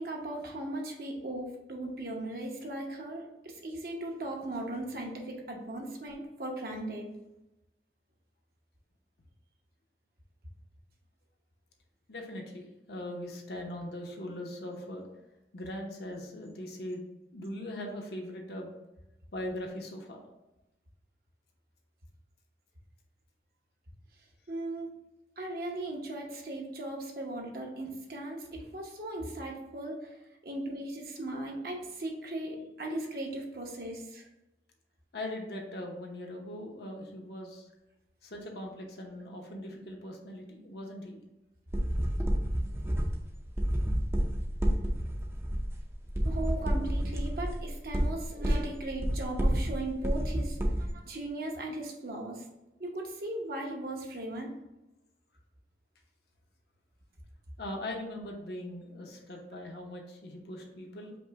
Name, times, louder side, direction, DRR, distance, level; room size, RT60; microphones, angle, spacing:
voice 1, 0.0-7.1 24.5-24.9 25.4-30.1 30.4-34.3 46.2-52.4 52.8-54.5, right 1 dB, 55° right, 0 dB, 0.9 m, -38 dB
voice 2, 12.1-15.1 15.5-18.7 19.3-20.2 35.1-37.7 38.2-41.2 57.6-61.2, left 1 dB, 65° left, 0 dB, 0.8 m, -40 dB
sound 1, 41.7-50.9, equal, 15° right, 0.5 m, -30 dB
5.2 x 2.1 x 4.6 m, 0.95 s
head